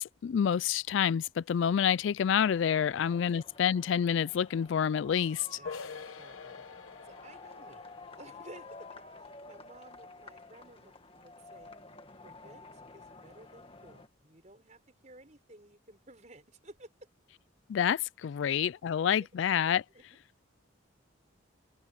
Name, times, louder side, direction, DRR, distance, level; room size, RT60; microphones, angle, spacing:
voice 1, 0.0-5.5 17.7-19.8, left 8 dB, 65° left, 0.3 m, -28 dB
sound 1, 2.4-14.1, left 3 dB, 25° left, 1.8 m, -51 dB
voice 2, 3.0-3.4 5.6-6.6 7.0-7.9 8.2-8.9 9.2-11.8 12.2-16.9 18.4-18.6 19.9-20.0, right 1 dB, 35° right, 5.8 m, -55 dB
sound 2, 5.7-11.1, left 5 dB, 85° left, 1.0 m, -48 dB
open air
head